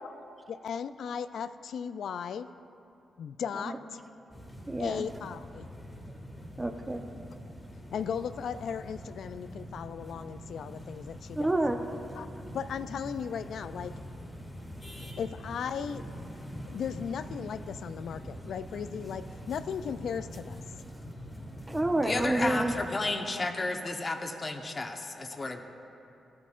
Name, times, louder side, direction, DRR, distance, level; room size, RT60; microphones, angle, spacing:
voice 1, 0.5-2.5 3.2-4.0 4.8-5.7 7.9-11.6 12.2-12.3 12.5-14.0 15.2-16.1 16.7-20.6 22.7-23.2, left 7 dB, 70° left, 13 dB, 0.3 m, -36 dB
sound 1, 4.3-22.9, equal, 20° left, 2.0 m, -44 dB
voice 2, 4.7-5.0 6.6-7.0 11.4-11.8 21.7-22.7, right 1 dB, 20° right, 5 dB, 0.9 m, -28 dB
voice 3, 22.0-25.6, left 2 dB, 40° left, 4 dB, 1.0 m, -32 dB
16.0 x 8.4 x 2.5 m, 2.7 s
supercardioid pair, 45°, 0 cm